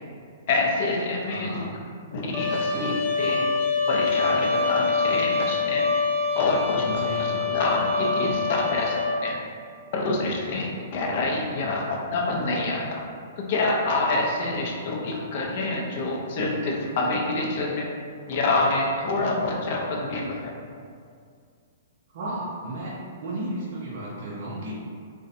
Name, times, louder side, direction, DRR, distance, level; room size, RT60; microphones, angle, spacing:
voice 1, 0.5-1.7 2.1-3.5 3.9-5.9 6.4-6.9 7.2-9.3 9.9-13.0 13.4-17.9 18.3-20.6, left 2 dB, 40° left, -1 dB, 0.4 m, -27 dB
voice 2, 1.3-1.7 6.7-7.5 11.6-11.9 22.1-22.9 23.2-24.7, right 1 dB, 45° right, -7 dB, 0.5 m, -34 dB
Trumpet, 2.3-9.2, left 4 dB, 10° right, 0.9 m, -25 dB
2.5 x 2.1 x 2.6 m, 2.2 s
hypercardioid pair, 170°, 0 cm